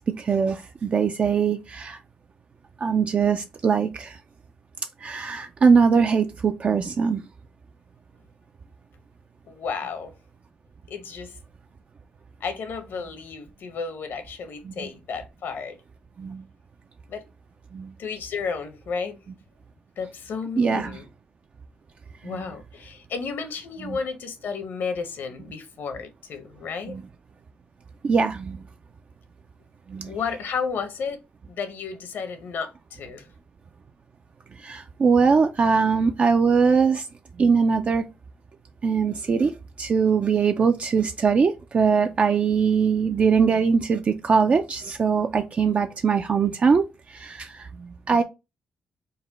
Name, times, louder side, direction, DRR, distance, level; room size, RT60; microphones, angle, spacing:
voice 1, 0.2-2.0 2.8-4.2 5.0-7.2 14.7-14.8 16.2-16.4 17.7-17.9 20.6-21.0 22.2-22.5 23.8-24.0 26.9-27.0 28.0-28.6 29.9-30.1 34.6-37.1 37.4-38.0 38.8-39.5 39.8-48.2, right 5 dB, 40° right, 0.3 m, -22 dB
voice 2, 9.5-10.1 10.9-11.4 12.4-15.8 17.1-17.2 18.0-19.2 20.0-21.1 22.2-27.0 30.0-31.2 31.5-33.3, left 5 dB, 70° left, 0.8 m, -32 dB
3.9 x 2.2 x 4.0 m
cardioid pair, 120°, 4 cm